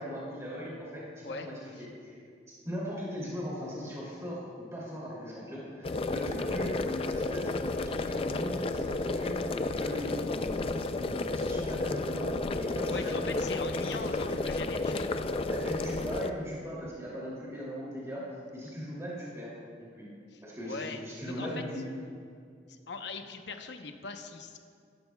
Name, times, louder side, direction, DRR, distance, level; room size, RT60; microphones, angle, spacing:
voice 1, 0.0-2.2 2.5-4.4 4.7-9.4 9.8-13.2 13.8-14.5 15.5-19.5 19.8-20.1 20.4-21.8, equal, 15° right, -7 dB, 2.7 m, -39 dB
sound 1, 5.8-16.3, left 2 dB, 30° left, 0.4 m, -32 dB
voice 2, 12.9-15.1 20.3-21.0 21.4-21.5 22.7-24.6, left 4 dB, 70° left, 5 dB, 0.9 m, -40 dB
18.0 x 12.0 x 2.3 m, 2.3 s
head